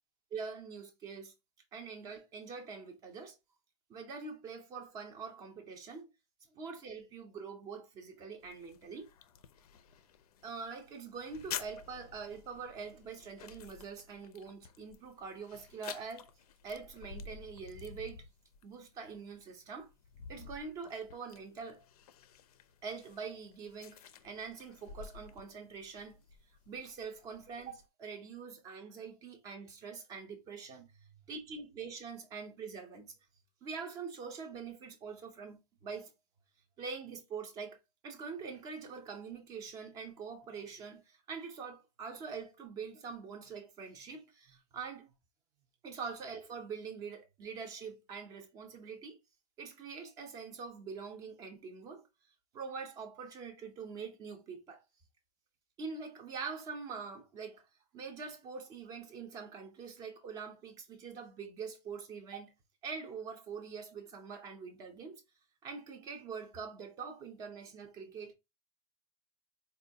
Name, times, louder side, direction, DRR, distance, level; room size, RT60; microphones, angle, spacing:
voice 1, 0.3-1.3 1.7-3.4 3.9-6.1 6.5-9.1 10.4-16.3 16.6-18.2 18.6-19.9 20.3-21.8 22.8-26.2 26.7-33.1 33.6-36.1 36.8-37.8 38.0-45.1 45.8-49.2 49.6-52.1 52.5-54.8 55.8-57.6 57.9-62.5 62.8-65.2 65.6-68.3, right 5 dB, 15° right, 0.5 m, -44 dB
sound 1, 8.4-27.9, left 7 dB, 65° left, 0.5 m, -51 dB
4.2 x 2.3 x 2.6 m
supercardioid pair, 165°, 21 cm